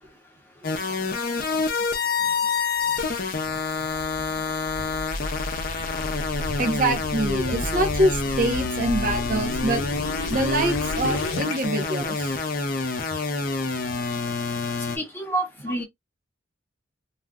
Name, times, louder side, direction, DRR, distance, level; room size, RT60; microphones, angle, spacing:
sound 1, 0.6-15.0, left 4 dB, 45° left, 0.5 m, -27 dB
sound 2, 3.5-11.5, left 2 dB, 90° left, 0.6 m, -33 dB
voice 1, 6.6-9.9 10.3-12.4, right 1 dB, 45° right, 0.6 m, -25 dB
voice 2, 15.0-15.8, right 2 dB, 10° left, 0.7 m, -28 dB
2.4 x 2.1 x 3.5 m
head